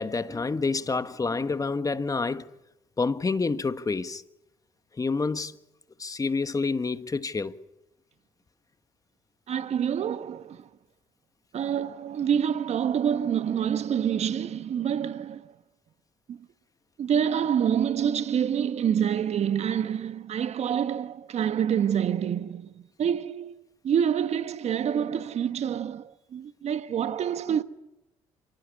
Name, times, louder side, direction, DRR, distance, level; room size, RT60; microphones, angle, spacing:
voice 1, 0.0-2.5 3.0-4.2 5.0-5.5 6.0-7.6, left 4 dB, 25° left, 1.4 m, -28 dB
voice 2, 9.5-10.7 11.5-15.6 16.3-16.5 17.0-23.5 23.8-27.6, right 8 dB, 55° right, 1.5 m, -27 dB
28.5 x 19.0 x 9.7 m
hypercardioid pair, 60°, 13 cm